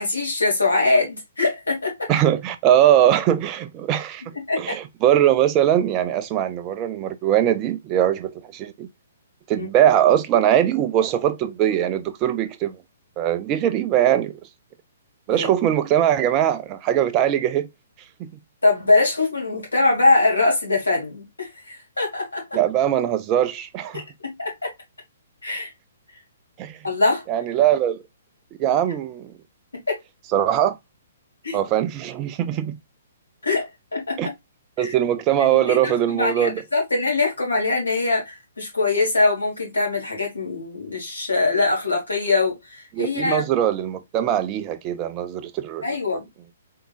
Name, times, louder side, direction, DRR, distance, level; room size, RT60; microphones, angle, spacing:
voice 1, 0.0-2.1 4.3-4.6 9.5-9.7 15.3-15.5 18.6-22.4 23.9-24.7 25.4-25.7 26.8-27.2 29.9-30.0 31.4-31.6 33.4-34.2 34.8-34.9 35.4-43.4 45.8-46.3, left 3 dB, 75° left, 2.2 m, -22 dB
voice 2, 2.1-4.2 4.6-8.9 9.5-12.8 13.2-14.4 15.3-17.7 18.2-18.3 22.5-24.0 26.6-26.8 27.3-28.0 28.6-29.3 30.3-30.8 31.5-32.8 34.2-34.3 34.8-36.5 42.9-45.9, right 11 dB, 25° right, 0.4 m, -21 dB
3.7 x 3.6 x 2.3 m
figure-of-eight pair, 120°, 0 cm